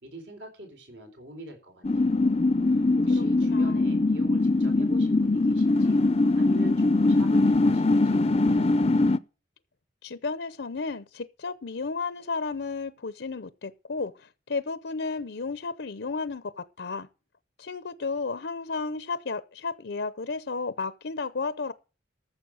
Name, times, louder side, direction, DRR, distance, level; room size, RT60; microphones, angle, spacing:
voice 1, 0.0-2.4 3.0-6.0 6.4-9.0, right 1 dB, 75° right, 4.0 m, -44 dB
sound 1, 1.8-9.2, left 2 dB, 35° left, 0.5 m, -22 dB
voice 2, 3.1-3.9 10.0-17.1 17.6-21.7, left 4 dB, 75° left, 0.7 m, -33 dB
14.0 x 6.8 x 6.4 m
head